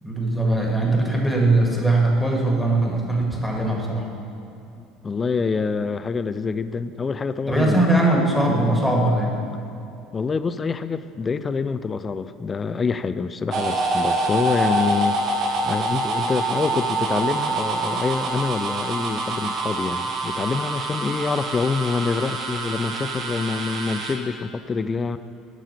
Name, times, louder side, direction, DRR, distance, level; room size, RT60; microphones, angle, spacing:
voice 1, 0.0-4.1 7.5-9.3, right 2 dB, 5° left, -1 dB, 2.0 m, -20 dB
voice 2, 4.8-7.8 10.1-25.2, left 5 dB, 25° left, 13 dB, 0.4 m, -26 dB
sound 1, 13.5-24.1, right 2 dB, 45° right, 1.2 m, -26 dB
9.2 x 6.2 x 6.8 m, 2.7 s
figure-of-eight pair, 65°, 0 cm